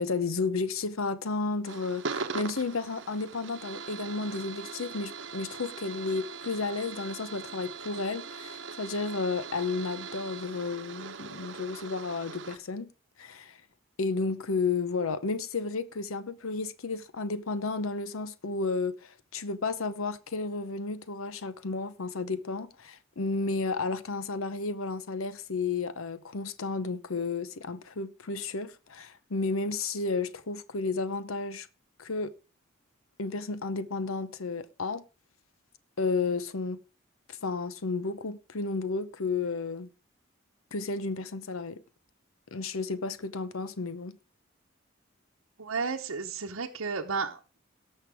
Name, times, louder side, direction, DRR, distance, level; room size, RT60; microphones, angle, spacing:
voice 1, 0.0-12.9 13.2-13.6 14.0-31.7 32.0-32.3 33.2-35.0 36.0-36.8 37.3-39.9 40.7-41.8 42.5-44.2, left 4 dB, 90° left, 0.8 m, -32 dB
sound 1, 1.6-12.6, right 5 dB, 60° right, 0.9 m, -41 dB
voice 2, 45.6-47.6, right 4 dB, 85° right, 0.9 m, -33 dB
18.0 x 6.5 x 3.5 m
head